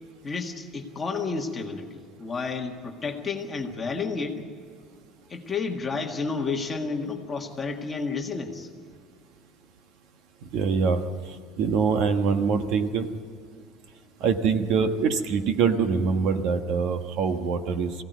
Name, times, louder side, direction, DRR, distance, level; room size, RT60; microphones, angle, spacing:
voice 1, 0.2-4.4 5.3-8.7, left 4 dB, 15° left, 1 dB, 1.8 m, -31 dB
voice 2, 10.5-11.1 11.6-13.1 14.2-17.9, right 5 dB, 50° right, 7 dB, 1.3 m, -24 dB
22.5 x 16.5 x 9.4 m, 2.1 s
cardioid pair, 175°, 0 cm